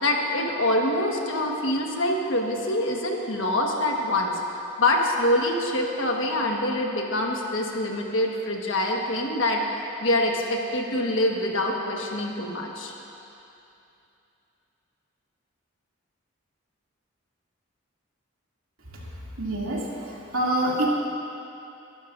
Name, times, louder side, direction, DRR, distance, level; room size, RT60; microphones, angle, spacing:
voice 1, 0.0-4.3 4.8-9.6 10.0-12.9, left 1 dB, 65° left, 0 dB, 1.4 m, -25 dB
voice 2, 19.4-19.8 20.3-20.9, right 1 dB, 80° right, -5 dB, 2.6 m, -25 dB
23.5 x 12.0 x 2.6 m, 2.8 s
head